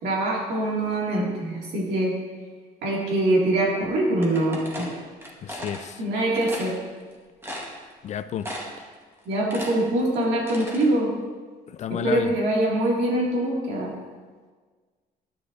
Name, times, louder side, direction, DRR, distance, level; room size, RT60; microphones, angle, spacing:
voice 1, 0.0-2.1 2.8-4.9 6.0-6.7 9.3-11.1 11.9-13.9, right 1 dB, 75° right, -3 dB, 2.4 m, -24 dB
sound 1, 4.2-5.8 6.3-6.7 7.1-7.2 7.4-8.1 8.4-8.9 9.2-10.9, equal, 15° right, 1.7 m, -36 dB
voice 2, 5.4-6.0 8.0-8.5 11.7-12.3, left 9 dB, 45° left, 12 dB, 0.4 m, -31 dB
11.0 x 6.6 x 2.7 m, 1.5 s
cardioid pair, 110°, 17 cm